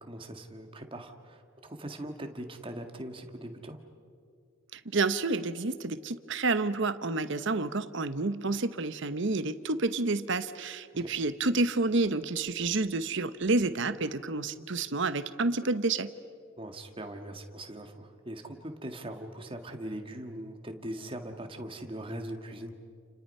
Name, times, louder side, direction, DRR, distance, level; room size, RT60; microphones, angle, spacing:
voice 1, 0.0-3.8 11.0-11.1 16.6-22.7, right 1 dB, 25° right, 5 dB, 1.8 m, -41 dB
voice 2, 4.7-16.1, right 3 dB, 60° right, 12 dB, 1.0 m, -29 dB
30.0 x 29.5 x 5.6 m, 2.3 s
head